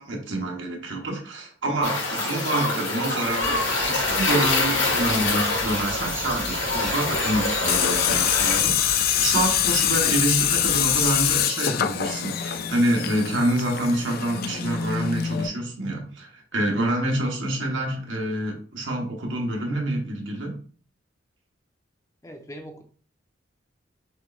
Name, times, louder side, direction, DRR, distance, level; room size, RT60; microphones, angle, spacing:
voice 1, 0.0-20.6, right 1 dB, 85° right, 1 dB, 1.2 m, -27 dB
sound 1, 1.8-8.6, left 3 dB, 80° left, 2.4 m, -25 dB
sound 2, 3.2-11.4, right 1 dB, 15° right, 1.0 m, -36 dB
Tools, 7.7-15.5, left 10 dB, 55° left, 0.4 m, -24 dB
voice 2, 22.2-22.8, equal, 15° left, 3 dB, 0.8 m, -40 dB
6.3 x 3.2 x 2.5 m, 0.43 s
head